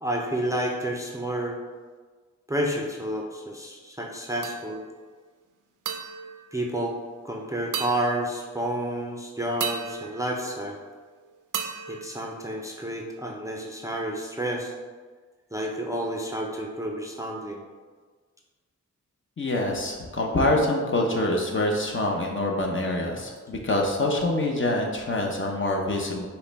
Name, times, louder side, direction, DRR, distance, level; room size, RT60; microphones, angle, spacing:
voice 1, 0.0-1.6 2.5-4.8 6.5-7.0 7.2-10.8 11.9-14.7 15.5-17.6, right 1 dB, 10° right, -1 dB, 0.5 m, -30 dB
sound 1, 4.4-5.0 5.9-7.3 7.7-8.8 9.6-11.1 11.5-13.0, right 7 dB, 90° right, 0.5 m, -36 dB
voice 2, 19.4-26.3, left 1 dB, 40° left, 0 dB, 0.8 m, -25 dB
5.5 x 2.2 x 4.0 m, 1.4 s
wide cardioid pair, 80°, 31 cm